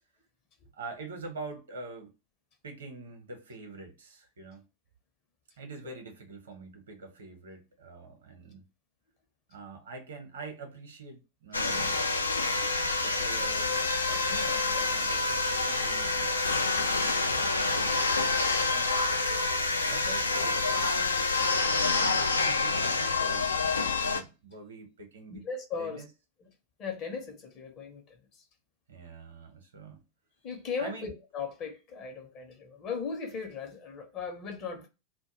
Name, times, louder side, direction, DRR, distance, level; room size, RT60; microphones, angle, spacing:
voice 1, 0.7-2.1 2.6-4.6 5.6-8.7 9.5-12.0 13.0-16.4 16.7-19.0 19.9-25.4 25.8-26.1 28.9-30.0 30.8-31.1, right 3 dB, 65° right, 0.8 m, -45 dB
sound 1, 11.5-24.2, left 3 dB, 80° left, 0.3 m, -27 dB
voice 2, 25.3-26.0 26.4-26.5 26.8-28.4 30.4-34.9, left 5 dB, 35° left, 0.7 m, -37 dB
2.2 x 2.2 x 2.9 m
figure-of-eight pair, 90°, 0 cm